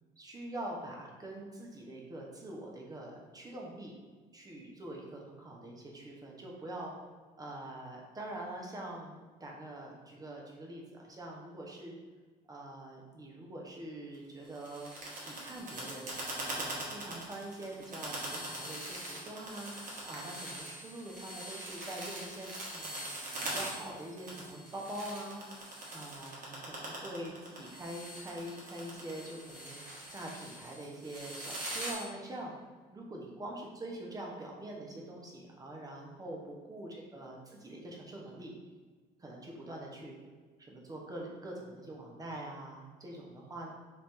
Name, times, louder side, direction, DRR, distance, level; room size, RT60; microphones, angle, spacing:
voice 1, 0.2-3.9 4.3-6.9 7.3-12.0 12.5-14.9 15.2-16.1 16.5-19.7 20.0-23.1 23.4-25.4 25.9-29.8 30.1-32.5 32.9-38.5 39.2-40.2 40.6-43.7, right 1 dB, 20° right, -1 dB, 0.9 m, -44 dB
sound 1, 14.4-31.9, right 1 dB, 50° right, 1.4 m, -42 dB
3.3 x 3.2 x 4.4 m, 1.5 s
cardioid pair, 110°, 17 cm